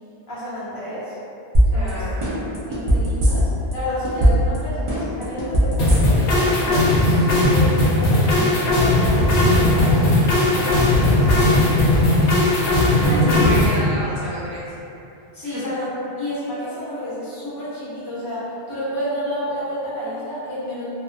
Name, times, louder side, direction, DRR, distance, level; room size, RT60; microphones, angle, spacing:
voice 1, 0.3-1.2 1.7-2.2 2.6-11.6 13.0-13.4 15.3-15.9 16.2-20.9, left 1 dB, 25° left, -11 dB, 0.7 m, -30 dB
sound 1, 1.5-1.9 2.2-3.7 4.0-4.6 4.9-6.4 6.7-6.8, equal, 50° right, 0.4 m, -17 dB
voice 2, 1.7-2.3 12.9-14.8 15.4-15.6, equal, 80° right, -8 dB, 0.8 m, -30 dB
sound 2, 5.8-13.8, left 1 dB, 70° left, 0.7 m, -17 dB
2.4 x 2.2 x 2.4 m, 2.8 s
omnidirectional pair, 1.0 m